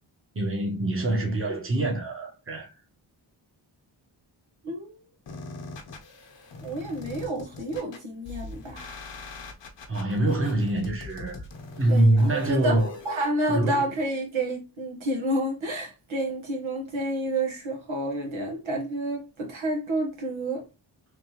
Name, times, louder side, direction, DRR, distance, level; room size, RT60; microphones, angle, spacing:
voice 1, 0.3-2.7 9.9-11.4 11.7-12.9 13.5-13.8, right 1 dB, 25° right, 1.2 m, -24 dB
voice 2, 4.6-5.0 6.6-9.0 11.9-12.8 13.0-20.6, right 1 dB, 75° right, 1.4 m, -30 dB
sound 1, 5.3-13.3, left 3 dB, 65° left, 0.9 m, -42 dB
3.4 x 2.7 x 3.0 m
cardioid pair, 45°, 48 cm